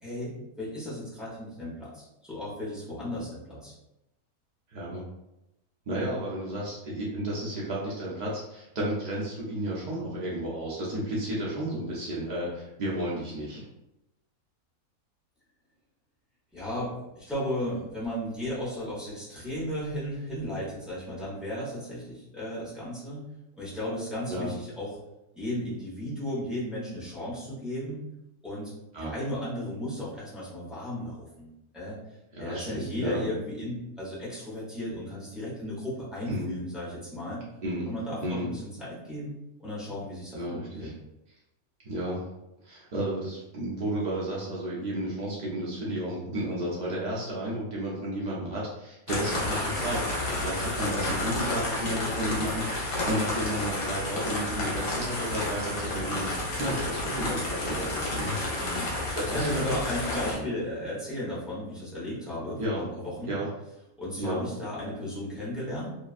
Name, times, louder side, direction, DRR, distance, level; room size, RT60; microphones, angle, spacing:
voice 1, 0.0-3.7 16.5-23.3 23.6-25.0 25.3-28.0 28.4-28.7 29.0-32.0 32.4-37.4 37.9-40.9 50.8-51.1 58.6-63.3 64.0-65.9, left 1 dB, ahead, -9 dB, 0.7 m, -35 dB
voice 2, 4.7-5.0 5.9-13.6 24.3-24.5 28.9-29.1 32.3-33.2 36.3-36.6 37.6-37.9 38.2-38.5 40.3-40.9 41.8-42.2 42.6-58.5 59.1-59.6 60.2-60.5 62.6-62.8 63.3-63.5 64.2-64.4, right 1 dB, 80° right, -5 dB, 0.4 m, -32 dB
sound 1, 49.1-60.3, left 2 dB, 70° left, 1.2 m, -31 dB
2.9 x 2.3 x 2.4 m, 0.91 s
omnidirectional pair, 1.5 m